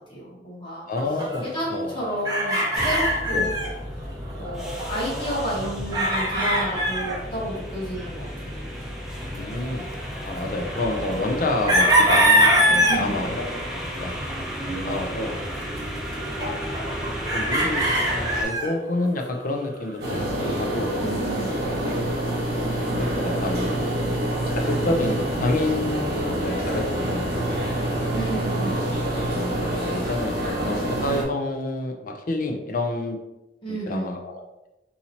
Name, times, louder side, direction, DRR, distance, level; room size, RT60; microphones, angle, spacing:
voice 1, 0.1-0.9 1.4-3.5 4.4-8.5 12.8-13.3 21.0-21.5 28.0-28.8 33.6-34.2, right 1 dB, 30° left, -6 dB, 1.2 m, -31 dB
voice 2, 0.9-1.9 3.3-3.5 9.3-9.8 10.3-13.6 14.0-14.2 14.6-15.3 16.4-16.5 17.3-21.0 23.0-24.2 24.5-27.3 28.3-33.2 33.7-34.4, left 2 dB, 50° left, 3 dB, 0.5 m, -29 dB
sound 1, 1.0-3.7 4.0-4.1 4.3-7.2 8.1-8.2 10.2-13.0 13.8-14.5 15.8-15.9 16.1-18.7 20.2-20.8, equal, 25° right, 0.9 m, -23 dB
sound 2, 2.7-18.4, equal, ahead, 0.7 m, -33 dB
sound 3, 20.0-31.2, right 1 dB, 60° right, 1.1 m, -26 dB
4.1 x 2.7 x 2.8 m, 0.97 s
head